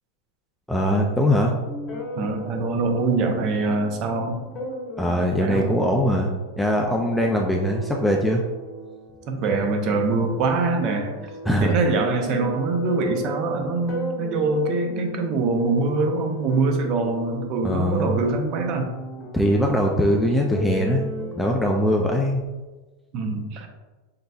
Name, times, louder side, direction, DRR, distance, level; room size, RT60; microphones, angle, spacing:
voice 1, 0.7-1.6 5.0-6.3 6.6-8.4 11.5-11.8 17.6-18.1 19.3-21.0 21.4-22.4, equal, ahead, 0 dB, 0.3 m, -21 dB
sound 1, 1.6-21.5, equal, 25° left, 0.9 m, -36 dB
voice 2, 2.2-4.4 5.4-5.8 9.3-11.1 11.6-18.9 23.1-23.7, right 3 dB, 35° right, 4 dB, 0.6 m, -24 dB
5.3 x 3.8 x 2.3 m, 1.2 s
supercardioid pair, 165°, 0 cm